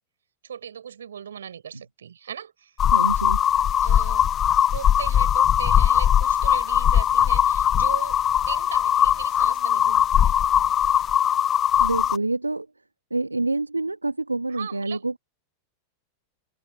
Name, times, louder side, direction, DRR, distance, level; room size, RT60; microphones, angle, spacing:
voice 1, 0.4-2.7 3.8-4.3 4.7-8.2 8.5-10.3 14.5-15.1, right 8 dB, 65° right, 6.1 m, -38 dB
sound 1, 2.8-12.2, left 10 dB, 25° left, 0.7 m, -20 dB
voice 2, 2.9-3.4 11.8-12.7 13.1-15.2, right 2 dB, 85° right, 1.6 m, -27 dB
open air
figure-of-eight pair, 90°, 0 cm